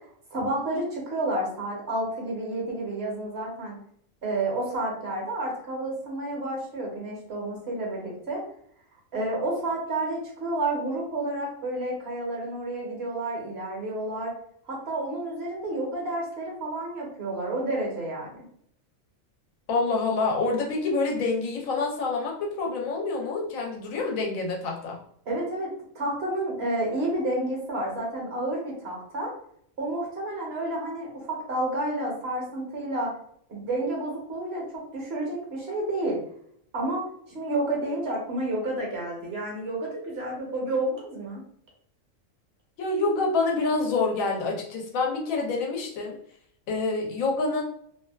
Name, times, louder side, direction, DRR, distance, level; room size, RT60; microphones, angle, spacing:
voice 1, 0.3-3.8 4.2-8.4 9.1-14.3 14.6-18.4 25.3-25.7 25.9-29.3 29.8-33.1 33.5-34.6 34.9-36.2 36.7-41.4, right 1 dB, 55° right, -2 dB, 0.9 m, -30 dB
voice 2, 19.7-25.0 42.8-46.2 46.7-47.6, left 3 dB, 90° left, 1 dB, 1.0 m, -27 dB
2.6 x 2.1 x 2.2 m, 0.66 s
omnidirectional pair, 1.4 m